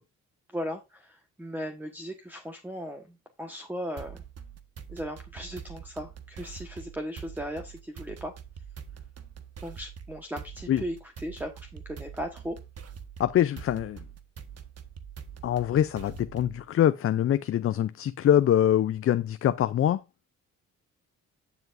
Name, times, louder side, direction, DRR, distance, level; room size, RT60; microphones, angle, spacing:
voice 1, 0.5-4.2 4.9-8.3 9.6-12.6, equal, 5° right, 1.4 m, -37 dB
sound 1, 4.0-16.6, right 7 dB, 55° right, 1.4 m, -44 dB
voice 2, 13.2-14.0 15.4-20.0, left 11 dB, 50° left, 0.5 m, -24 dB
11.0 x 7.0 x 2.6 m
cardioid pair, 90°, 30 cm